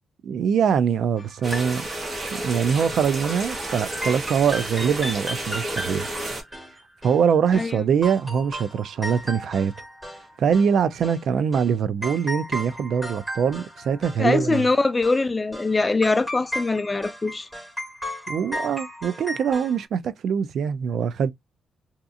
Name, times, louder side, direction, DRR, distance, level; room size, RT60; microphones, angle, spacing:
voice 1, 0.2-1.9 2.1-6.1 7.0-9.7 10.4-14.6 18.3-21.3, right 7 dB, 65° right, 0.3 m, -23 dB
sound 1, 1.2-2.7 3.0-3.2 3.5-3.7 4.0-7.7 8.0-10.3 10.5-11.2 11.5-11.7 12.0-14.3 14.5-14.7 15.0-15.2 15.5-15.7 16.0-19.8, equal, 5° right, 1.4 m, -35 dB
sound 2, 1.4-6.4, right 1 dB, 30° right, 1.0 m, -31 dB
voice 2, 14.2-17.5, left 3 dB, 20° left, 0.3 m, -22 dB
2.7 x 2.4 x 2.4 m
cardioid pair, 120°, 0 cm